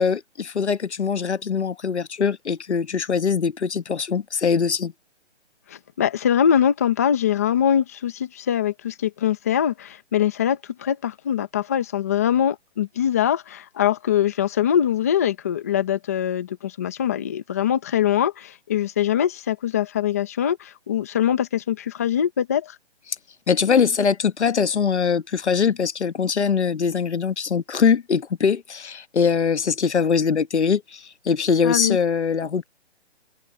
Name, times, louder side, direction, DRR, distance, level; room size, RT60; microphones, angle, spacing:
voice 1, 0.0-4.9 23.5-32.7, left 6 dB, 75° left, 1.6 m, -22 dB
voice 2, 5.7-22.8 31.6-32.0, left 9 dB, 15° left, 0.8 m, -23 dB
hypercardioid pair, 170°, 34 cm